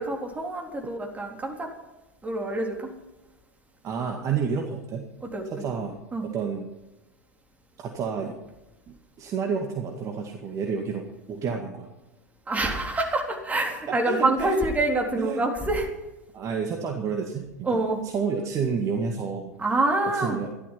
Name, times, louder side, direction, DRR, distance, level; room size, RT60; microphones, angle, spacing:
voice 1, 0.0-1.7 2.2-2.9 5.2-5.6 6.1-6.3 12.5-15.9 17.6-18.0 19.6-20.4, right 2 dB, 15° right, 1 dB, 3.6 m, -26 dB
voice 2, 3.8-5.1 5.5-6.0 6.2-6.7 7.8-8.4 8.9-11.9 13.9-14.6 15.2-15.4 16.3-19.5 20.1-20.5, right 6 dB, 35° right, 2 dB, 2.1 m, -30 dB
15.0 x 12.5 x 5.8 m, 1.0 s
figure-of-eight pair, 90°, 9 cm